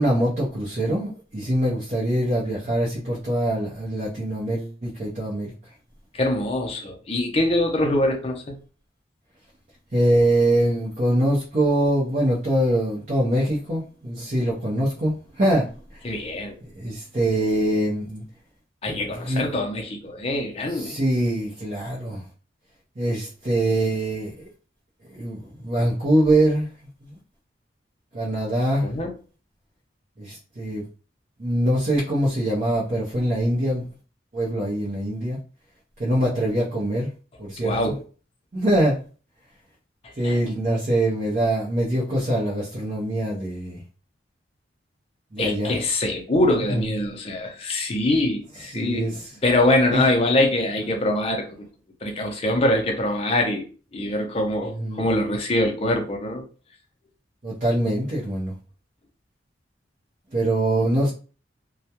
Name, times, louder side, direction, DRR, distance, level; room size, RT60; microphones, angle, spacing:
voice 1, 0.0-5.5 9.9-15.7 16.7-18.2 19.0-19.4 20.7-22.2 23.0-24.5 25.1-26.7 27.0-27.2 28.1-28.9 30.2-30.8 31.4-33.8 34.3-35.4 36.0-37.1 37.4-37.8 38.5-39.0 40.2-43.8 45.3-45.7 46.7-46.8 48.7-49.3 49.9-50.0 54.7-55.0 57.4-58.5 60.3-61.1, right 1 dB, 40° right, 0.6 m, -23 dB
voice 2, 6.1-8.5 16.0-16.5 18.8-20.9 28.8-29.1 37.6-38.0 40.2-40.4 45.4-49.1 49.4-51.6 52.0-53.7 53.9-56.4, left 1 dB, 30° left, 0.5 m, -23 dB
2.3 x 2.1 x 2.8 m
head